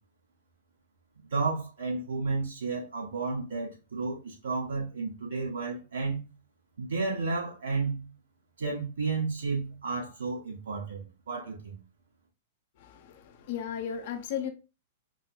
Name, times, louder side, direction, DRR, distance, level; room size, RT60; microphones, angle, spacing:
voice 1, 1.3-6.2 6.8-8.1 8.6-11.8, right 4 dB, 75° right, 2.0 m, -32 dB
voice 2, 12.8-14.5, left 8 dB, 55° left, 0.6 m, -35 dB
4.9 x 2.2 x 2.2 m
figure-of-eight pair, 100°, 0 cm